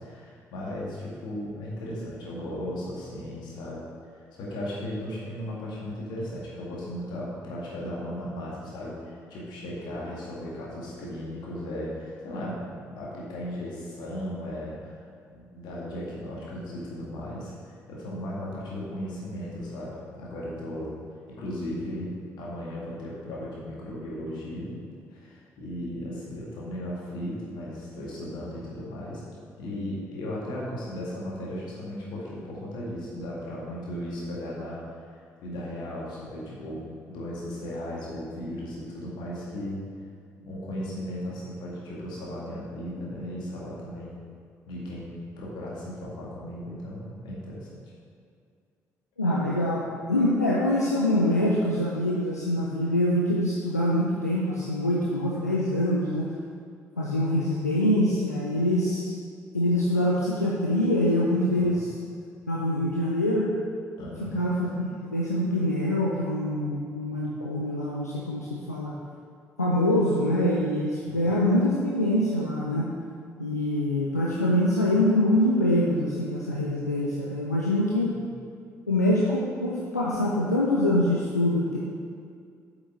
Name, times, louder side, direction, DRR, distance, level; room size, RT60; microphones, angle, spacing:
voice 1, 0.0-3.8 4.1-15.0 15.3-20.9 21.3-24.7 25.1-29.2 29.6-34.8 35.4-39.8 40.5-44.2 44.7-45.1 45.4-47.8 61.6-61.9 64.0-64.4 71.1-71.3 78.1-78.3, left 1 dB, 60° left, -5 dB, 2.0 m, -36 dB
voice 2, 49.2-56.3 57.0-59.1 59.5-61.9 62.5-63.5 64.3-68.9 69.6-72.9 73.4-78.1 78.9-81.8, left 1 dB, 90° left, -5 dB, 0.5 m, -24 dB
8.1 x 5.9 x 4.0 m, 2.2 s
figure-of-eight pair, 45°, 8 cm